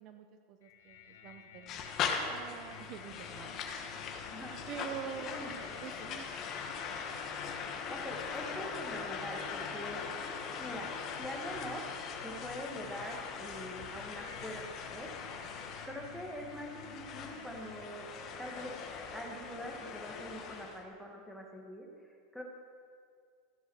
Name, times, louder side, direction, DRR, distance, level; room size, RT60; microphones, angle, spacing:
voice 1, 0.0-3.6 4.7-5.4 5.8-6.2, right 8 dB, 50° right, 7 dB, 0.6 m, -46 dB
sound 1, 0.6-20.4, left 8 dB, 85° left, 0.9 m, -53 dB
sound 2, 1.7-20.8, left 6 dB, 40° left, 1.3 m, -41 dB
voice 2, 4.3-4.8 5.2-5.5 6.0-6.1 7.9-10.0 10.5-10.9 11.2-11.8 12.2-15.1 15.6-18.7 19.1-22.4, equal, ahead, 0 dB, 1.7 m, -44 dB
14.5 x 5.5 x 6.3 m, 2.2 s
supercardioid pair, 125°, 0 cm